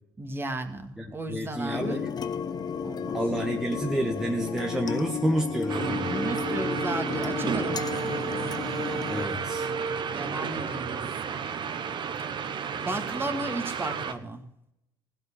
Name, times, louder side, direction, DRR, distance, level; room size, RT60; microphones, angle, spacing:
voice 1, 0.2-2.1 2.8-3.2 6.1-8.5 10.1-11.0 12.8-14.4, right 2 dB, 20° right, 5 dB, 2.1 m, -34 dB
voice 2, 1.0-2.1 3.1-6.1 9.1-9.7, right 1 dB, 5° right, 0 dB, 1.5 m, -29 dB
sound 1, 1.7-9.3, left 7 dB, 35° left, 0.7 m, -33 dB
sound 2, 5.7-14.1, right 6 dB, 45° right, 1.2 m, -31 dB
16.0 x 5.5 x 8.3 m, 0.79 s
hypercardioid pair, 75°, 11 cm